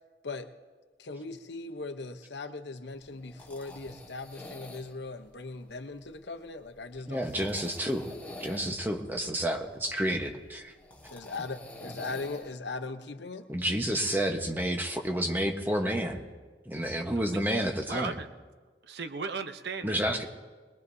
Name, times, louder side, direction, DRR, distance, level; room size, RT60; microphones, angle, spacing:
voice 1, 1.0-7.6 8.4-8.6 11.1-13.5, left 3 dB, 80° left, 8 dB, 0.9 m, -39 dB
sound 1, 2.9-12.6, left 1 dB, 10° left, 1.7 m, -48 dB
voice 2, 7.1-8.1 8.4-10.7 13.5-16.2 16.7-18.1 19.8-20.2, right 1 dB, 10° right, 3 dB, 1.1 m, -30 dB
voice 3, 17.1-17.4 17.9-18.3 18.8-20.2, right 4 dB, 70° right, 9 dB, 0.8 m, -37 dB
22.0 x 20.5 x 2.7 m, 1.4 s
head